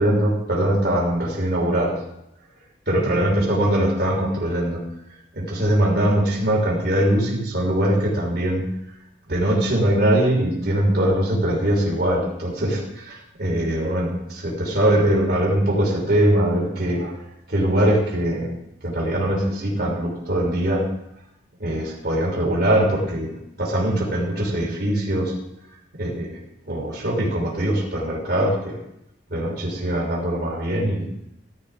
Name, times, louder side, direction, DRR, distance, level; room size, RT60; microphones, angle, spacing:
voice 1, 0.0-2.0 2.9-4.8 5.3-8.6 9.3-17.2 17.5-18.6 18.8-20.9 21.6-25.3 26.0-26.3 26.6-28.8 29.3-31.1, right 1 dB, 55° right, -2 dB, 3.3 m, -22 dB
15.5 x 12.5 x 3.5 m, 0.80 s
head